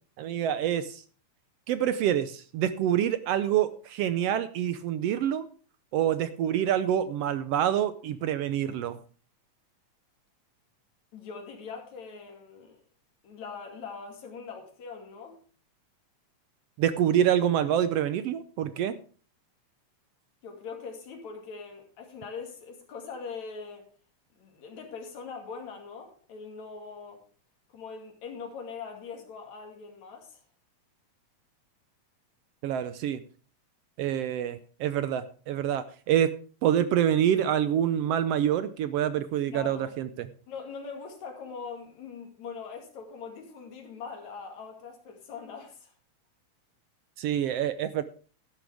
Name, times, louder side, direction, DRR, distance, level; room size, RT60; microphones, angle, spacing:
voice 1, 0.2-1.0 1.7-5.5 5.9-9.0 16.8-18.9 32.6-33.2 34.0-36.3 36.6-40.3 47.2-48.0, right 10 dB, 75° right, 1.5 m, -26 dB
voice 2, 11.1-12.8 13.2-15.4 20.4-23.9 24.3-27.2 27.7-30.4 39.4-39.9 40.5-45.9, left 5 dB, 70° left, 3.6 m, -42 dB
13.0 x 11.5 x 3.5 m
omnidirectional pair, 3.4 m